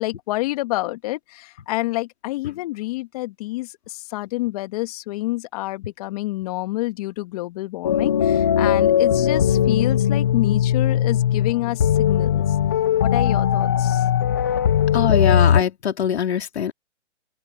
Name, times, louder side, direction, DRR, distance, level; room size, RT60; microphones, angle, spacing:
voice 1, 0.0-12.5 13.0-14.0, left 19 dB, 30° left, 1.7 m, -28 dB
sound 1, 7.8-15.6, left 9 dB, 15° left, 0.4 m, -19 dB
voice 2, 14.9-16.7, left 8 dB, 60° left, 2.9 m, -22 dB
open air
hypercardioid pair, 145°, 36 cm